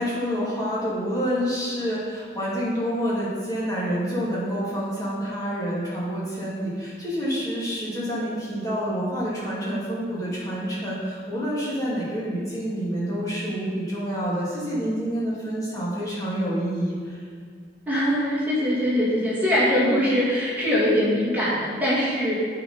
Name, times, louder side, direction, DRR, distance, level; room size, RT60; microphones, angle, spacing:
voice 1, 0.0-17.2 19.8-20.0, equal, 20° left, -8 dB, 2.5 m, -28 dB
voice 2, 17.9-22.3, equal, 10° right, -9 dB, 2.4 m, -22 dB
9.7 x 5.1 x 5.4 m, 2.1 s
head